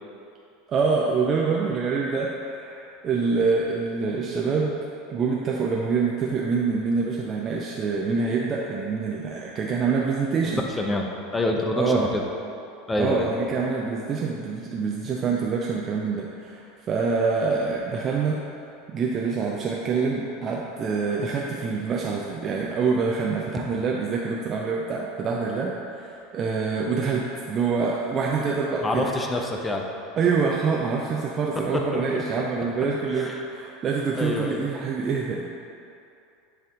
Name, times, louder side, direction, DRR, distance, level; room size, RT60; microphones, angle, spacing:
voice 1, 0.7-4.8 5.1-10.7 11.8-12.1 13.0-18.4 18.9-29.1 30.2-35.4, right 4 dB, 30° right, -2 dB, 0.5 m, -26 dB
voice 2, 10.8-11.1 11.3-12.2 12.9-13.3 28.8-29.9 31.6-32.2 33.2-33.3 34.1-34.6, left 2 dB, 15° left, 1 dB, 0.7 m, -26 dB
9.7 x 3.5 x 3.7 m, 2.6 s
figure-of-eight pair, 75°, 0 cm